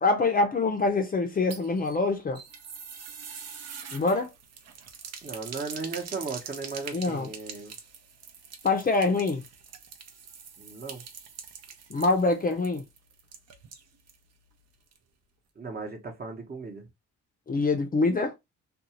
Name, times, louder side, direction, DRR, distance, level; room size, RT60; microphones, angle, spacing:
voice 1, 0.0-2.4 3.9-4.3 6.9-7.3 8.6-9.4 11.9-12.8 17.5-18.3, left 3 dB, 30° left, 0.6 m, -25 dB
sound 1, 1.3-14.2 14.5-14.6 14.9-15.0, right 6 dB, 55° right, 0.7 m, -44 dB
voice 2, 5.2-7.7 10.6-11.0 15.5-16.9, right 4 dB, 30° right, 0.9 m, -36 dB
2.6 x 2.3 x 2.8 m
cardioid pair, 90°, 30 cm